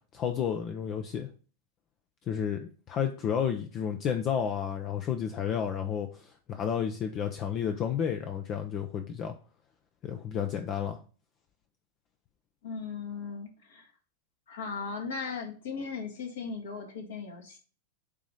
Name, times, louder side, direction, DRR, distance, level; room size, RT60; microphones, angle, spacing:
voice 1, 0.1-1.3 2.3-9.3 10.0-11.0, left 8 dB, 35° left, 6 dB, 0.7 m, -31 dB
voice 2, 12.6-13.9 14.5-17.6, left 5 dB, 60° left, 2 dB, 1.8 m, -37 dB
8.4 x 3.1 x 5.2 m, 0.38 s
figure-of-eight pair, 90°, 0 cm